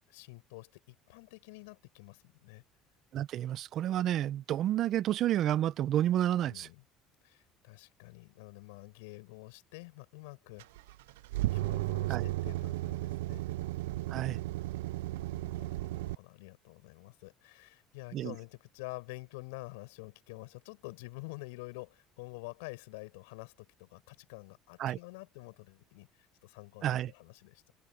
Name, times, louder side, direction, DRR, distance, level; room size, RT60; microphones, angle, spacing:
voice 1, 0.1-2.6 6.5-6.8 7.2-10.7 11.5-13.4 15.1-27.7, left 26 dB, 85° left, 7.0 m, -48 dB
voice 2, 3.1-6.7 12.1-12.2 14.1-14.4 18.1-18.3 24.8-25.0 26.8-27.1, right 12 dB, 60° right, 1.0 m, -30 dB
sound 1, 10.6-16.1, right 18 dB, 85° right, 0.5 m, -34 dB
open air
supercardioid pair, 80°, 0 cm